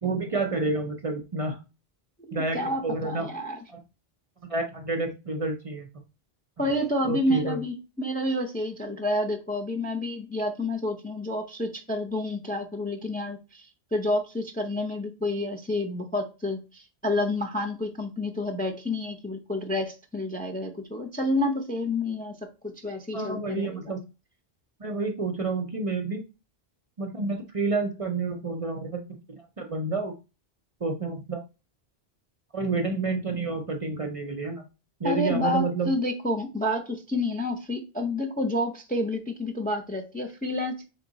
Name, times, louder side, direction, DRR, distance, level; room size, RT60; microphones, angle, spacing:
voice 1, 0.0-1.6 2.3-3.3 3.7-3.8 4.5-5.9 7.1-7.6 23.1-24.0 24.8-26.2 27.0-29.0 29.3-30.1 30.8-31.4 32.5-34.7 35.0-35.9, right 3 dB, 40° right, 4 dB, 0.6 m, -29 dB
voice 2, 2.3-3.6 6.6-22.4 22.6-23.9 35.0-40.9, left 1 dB, 10° left, 3 dB, 0.5 m, -29 dB
3.6 x 3.5 x 4.0 m, 0.30 s
omnidirectional pair, 1.0 m